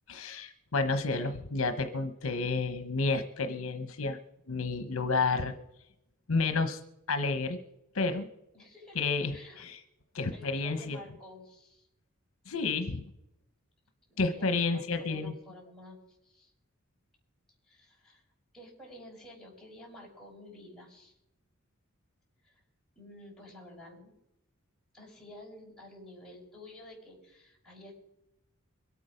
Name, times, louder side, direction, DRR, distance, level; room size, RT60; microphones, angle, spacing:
voice 1, 0.1-4.2 4.5-5.5 6.3-6.8 7.1-7.6 7.9-8.3 9.0-9.3 9.6-9.8 10.1-11.0 12.5-13.1 14.2-15.3, left 3 dB, 70° left, 9 dB, 1.0 m, -30 dB
voice 2, 8.5-9.0 9.3-9.7 10.3-11.9 14.1-16.5 17.6-18.3 18.5-21.2 22.4-22.6 22.9-24.1 24.9-27.9, left 1 dB, ahead, -5 dB, 5.7 m, -51 dB
23.5 x 8.7 x 5.1 m, 0.86 s
head